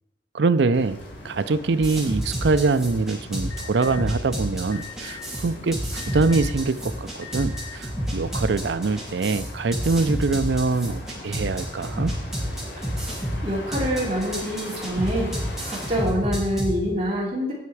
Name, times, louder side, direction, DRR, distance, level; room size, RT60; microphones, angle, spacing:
voice 1, 0.3-1.0 1.2-12.1, right 3 dB, 80° right, 12 dB, 0.5 m, -24 dB
sound 1, 0.7-16.1, left 1 dB, 80° left, 3.2 m, -40 dB
sound 2, 1.8-16.7, equal, 5° right, 2.6 m, -29 dB
Alarm, 3.5-4.0 4.7-5.3 6.0-6.6 7.2-7.8, left 9 dB, 15° left, 2.5 m, -40 dB
voice 2, 13.4-15.3 15.7-17.5, equal, 35° right, -4 dB, 3.3 m, -26 dB
17.0 x 5.7 x 4.8 m, 0.88 s
head